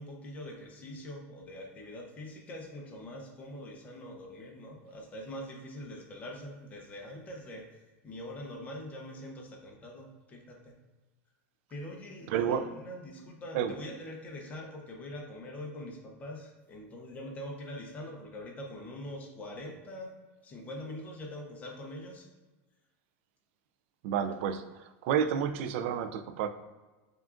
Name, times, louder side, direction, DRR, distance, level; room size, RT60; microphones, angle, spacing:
voice 1, 0.0-10.7 11.7-20.1 20.4-22.3, left 1 dB, 20° left, 0 dB, 0.7 m, -43 dB
voice 2, 12.3-12.6 13.5-13.7 24.0-26.5, right 8 dB, 60° right, 10 dB, 0.3 m, -30 dB
5.6 x 2.4 x 2.4 m, 1.2 s
supercardioid pair, 155°, 7 cm